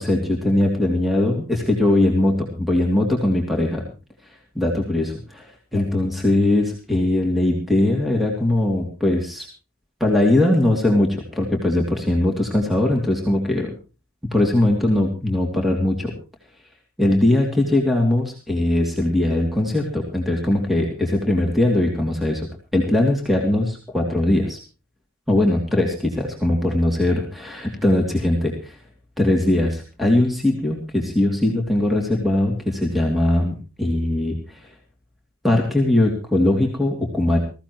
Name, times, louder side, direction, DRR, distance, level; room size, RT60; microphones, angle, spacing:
voice 1, 0.0-3.9 4.5-9.5 10.0-13.7 14.3-16.1 17.0-22.5 22.7-24.6 25.3-28.8 29.2-34.6 35.4-37.4, left 1 dB, ahead, 0 dB, 2.9 m, -20 dB
21.0 x 15.5 x 3.1 m, 0.35 s
head